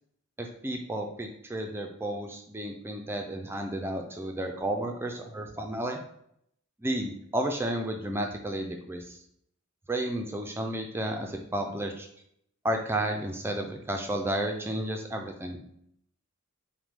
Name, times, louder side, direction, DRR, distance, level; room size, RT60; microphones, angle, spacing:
voice 1, 0.4-6.0 6.8-9.2 9.9-12.1 12.6-15.6, right 1 dB, 10° right, 3 dB, 0.4 m, -32 dB
5.8 x 2.2 x 3.5 m, 0.71 s
head